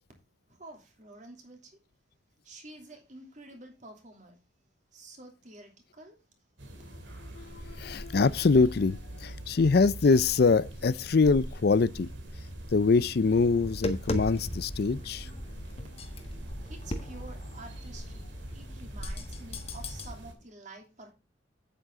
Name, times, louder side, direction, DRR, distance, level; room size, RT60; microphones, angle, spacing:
voice 1, 0.5-1.7 2.4-4.4 4.9-6.2 16.6-21.1, right 2 dB, 40° right, 3.0 m, -49 dB
sound 1, 6.6-20.3, right 1 dB, 75° right, 2.4 m, -43 dB
voice 2, 7.3-12.1 12.7-15.3, left 4 dB, 55° left, 0.4 m, -24 dB
Tap, 13.4-20.1, left 1 dB, 30° left, 1.5 m, -38 dB
9.3 x 8.9 x 3.6 m
head